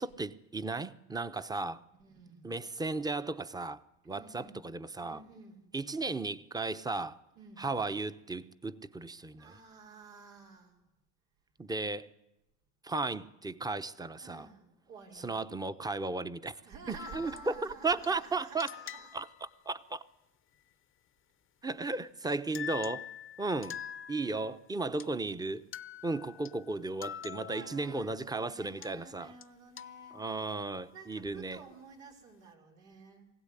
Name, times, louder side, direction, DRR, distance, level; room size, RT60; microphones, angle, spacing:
voice 1, 0.0-1.8 2.4-3.8 4.1-5.2 5.7-7.2 7.6-9.5 11.6-12.1 12.8-14.5 15.2-16.6 17.1-18.7 19.1-20.0 21.6-23.0 23.4-23.8 24.1-25.7 26.0-29.3 30.1-31.6, right 3 dB, 10° right, 0.9 m, -35 dB
voice 2, 2.0-2.6 4.1-4.6 5.0-5.6 7.4-7.7 9.4-10.8 14.2-15.4 16.6-19.1 27.4-30.2 30.9-33.3, right 4 dB, 85° right, 5.2 m, -51 dB
sound 1, 17.0-18.1 18.6-19.5 22.2-22.3 22.5-24.6 25.0-25.1 25.7-28.1 28.8-28.9 29.4-29.5 29.8-30.8, left 9 dB, 30° left, 0.8 m, -45 dB
23.5 x 16.0 x 10.0 m
supercardioid pair, 95°, 40 cm